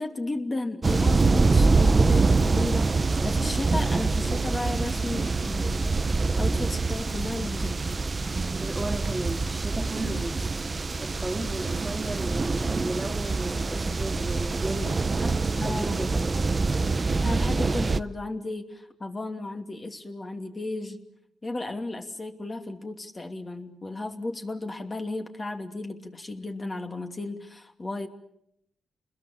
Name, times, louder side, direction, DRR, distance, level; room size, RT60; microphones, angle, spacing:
voice 1, 0.0-7.8 15.6-16.0 17.2-21.0 21.4-28.1, left 2 dB, 30° left, 4 dB, 2.7 m, -34 dB
sound 1, 0.8-18.0, right 3 dB, 30° right, 0.9 m, -25 dB
voice 2, 2.9-3.3 8.5-10.5 11.0-15.3 15.6-16.6, right 1 dB, 15° right, 4 dB, 2.5 m, -35 dB
28.5 x 21.5 x 7.5 m, 0.75 s
cardioid pair, 85°, 0 cm